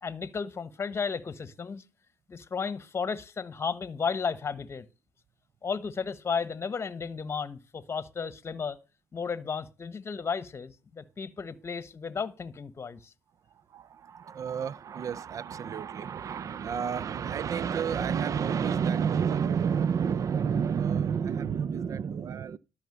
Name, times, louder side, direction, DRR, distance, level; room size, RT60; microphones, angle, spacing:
voice 1, 0.0-1.8 2.3-4.9 5.6-8.8 9.1-13.1, left 5 dB, 35° left, 1.2 m, -34 dB
voice 2, 13.5-22.6, right 7 dB, 45° right, 0.6 m, -30 dB
12.5 x 5.7 x 6.7 m
cardioid pair, 85°, 8 cm